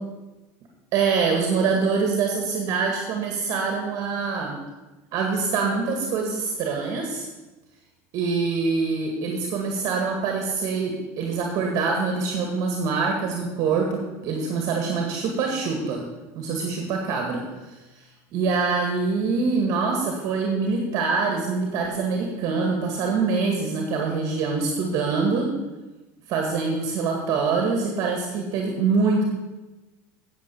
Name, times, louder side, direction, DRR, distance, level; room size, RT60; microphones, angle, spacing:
voice 1, 0.9-4.6 5.1-7.3 8.1-16.0 16.4-18.0 18.3-25.5 26.3-29.2, right 4 dB, 45° right, 1 dB, 1.9 m, -25 dB
9.1 x 7.7 x 7.1 m, 1.1 s
cardioid pair, 155°, 8 cm